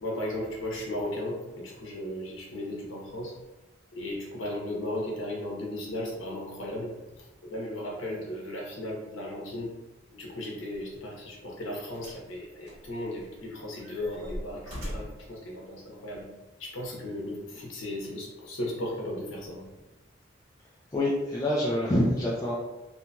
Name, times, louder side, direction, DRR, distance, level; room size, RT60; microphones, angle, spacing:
voice 1, 0.0-3.3 3.9-6.9 7.2-9.7 10.1-16.3 16.6-19.7, left 1 dB, 80° left, -1 dB, 0.8 m, -36 dB
sound 1, 11.9-12.3 12.7-13.4 13.8-15.3 16.1-16.2, equal, 75° right, 1.4 m, -40 dB
voice 2, 20.9-22.6, left 1 dB, 15° left, -6 dB, 0.3 m, -26 dB
2.8 x 2.7 x 2.2 m, 1.0 s
head